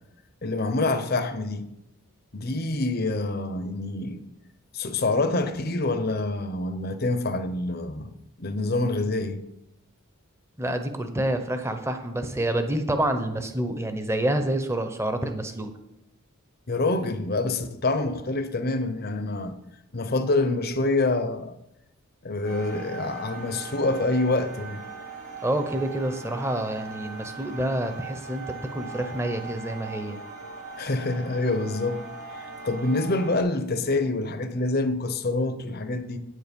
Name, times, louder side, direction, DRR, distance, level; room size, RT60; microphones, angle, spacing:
voice 1, 0.4-1.7 2.3-4.2 4.7-8.1 8.4-9.4 16.7-19.6 19.9-21.5 22.2-24.8 30.8-32.1 32.4-36.2, left 2 dB, 45° left, 0.9 m, -26 dB
voice 2, 10.6-15.7 25.4-30.2, right 1 dB, 10° right, 0.9 m, -28 dB
sound 1, 22.4-33.4, right 4 dB, 70° right, 4.5 m, -40 dB
9.6 x 9.0 x 5.3 m
head